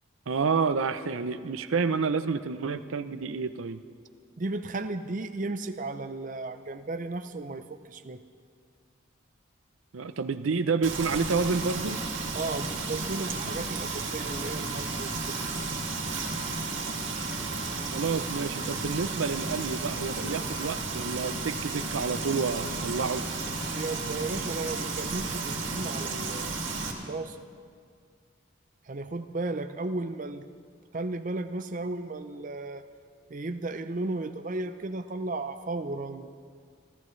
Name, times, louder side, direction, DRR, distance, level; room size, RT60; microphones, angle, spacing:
voice 1, 0.3-3.8 9.9-12.0 17.9-23.2, right 5 dB, 85° right, 11 dB, 0.6 m, -29 dB
voice 2, 4.4-8.2 12.3-15.4 23.6-27.4 28.9-30.4 30.9-32.9 33.3-36.3, right 2 dB, 40° right, 9 dB, 0.6 m, -34 dB
Frying (food), 10.8-26.9, right 3 dB, 65° right, 2.2 m, -33 dB
29.5 x 13.5 x 3.2 m, 2.1 s
head